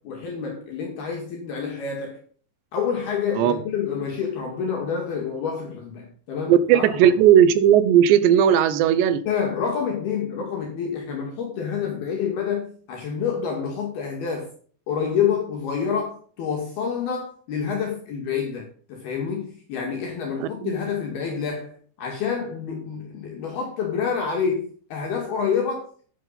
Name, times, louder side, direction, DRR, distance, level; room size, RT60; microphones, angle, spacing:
voice 1, 0.0-2.2 2.7-7.1 9.3-14.5 14.9-26.1, left 6 dB, 60° left, 3.8 m, -28 dB
voice 2, 6.5-9.2 20.4-20.7, right 9 dB, 75° right, 3.0 m, -17 dB
11.5 x 9.5 x 4.2 m
omnidirectional pair, 5.5 m